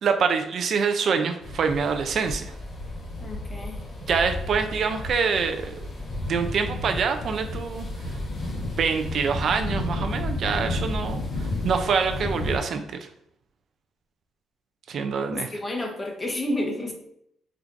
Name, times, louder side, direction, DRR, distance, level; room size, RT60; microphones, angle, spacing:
voice 1, 0.0-2.5 4.1-5.7 6.3-7.9 8.6-13.0 14.9-15.5, right 5 dB, 60° right, 7 dB, 0.3 m, -25 dB
sound 1, 1.4-12.6, left 1 dB, 45° left, 1.1 m, -32 dB
voice 2, 3.2-3.8 15.3-16.9, left 1 dB, 20° left, 1 dB, 0.9 m, -30 dB
4.4 x 2.4 x 2.5 m, 0.72 s
cardioid pair, 90°, 0 cm